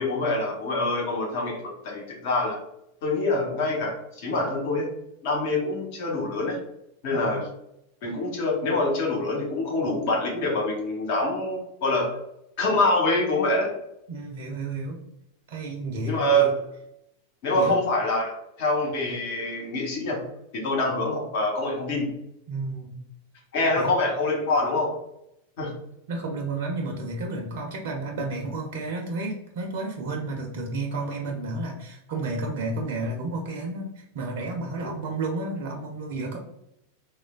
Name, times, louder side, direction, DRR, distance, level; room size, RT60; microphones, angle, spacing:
voice 1, 0.0-2.6 3.0-4.9 5.2-6.6 7.0-7.5 8.0-12.1 12.6-13.7 16.1-16.5 17.4-20.2 20.5-22.1 23.5-24.9 25.6-25.7, left 1 dB, 50° left, 0 dB, 0.7 m, -25 dB
voice 2, 14.1-15.0 15.5-16.5 17.5-17.8 22.5-23.0 23.7-23.9 26.1-36.4, right 2 dB, 50° right, 1 dB, 0.4 m, -31 dB
3.1 x 2.1 x 2.2 m, 0.80 s
figure-of-eight pair, 90°, 0 cm